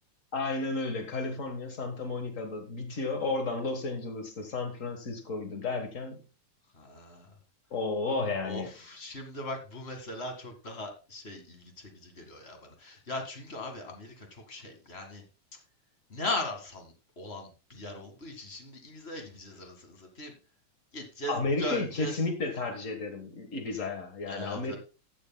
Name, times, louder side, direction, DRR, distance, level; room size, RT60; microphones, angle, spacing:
voice 1, 0.3-6.2 7.7-8.7 21.3-24.7, left 3 dB, 75° left, 5 dB, 0.7 m, -32 dB
voice 2, 6.7-7.3 8.4-15.2 16.1-20.3 20.9-22.1 24.3-24.8, left 1 dB, 30° left, 5 dB, 1.4 m, -39 dB
14.5 x 9.9 x 2.2 m, 0.31 s
omnidirectional pair, 3.6 m